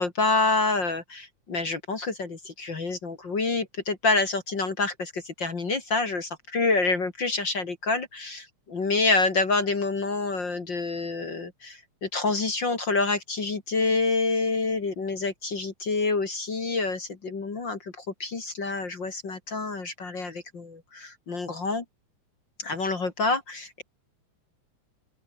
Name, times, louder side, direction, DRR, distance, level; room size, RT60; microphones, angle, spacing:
voice 1, 0.0-21.8 22.6-23.8, left 3 dB, 40° left, 2.8 m, -27 dB
open air
omnidirectional pair, 3.5 m